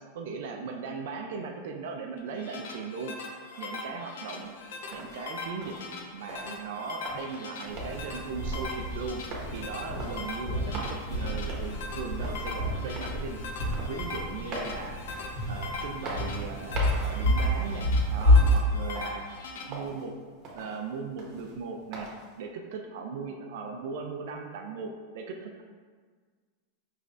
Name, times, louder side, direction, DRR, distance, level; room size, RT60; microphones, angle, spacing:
voice 1, 0.1-3.2 3.6-4.5 4.9-5.8 6.1-9.2 9.5-13.4 13.9-15.0 15.5-19.3 19.7-20.1 20.5-22.1 22.4-25.6, right 5 dB, 70° right, 3 dB, 0.4 m, -38 dB
sound 1, 2.2-19.6, left 3 dB, 80° left, 0.6 m, -41 dB
sound 2, 4.4-22.4, right 2 dB, 35° right, 1.0 m, -44 dB
sound 3, 7.7-18.6, left 1 dB, 40° left, 1.5 m, -28 dB
5.6 x 3.1 x 2.5 m, 1.6 s
supercardioid pair, 145°, 0 cm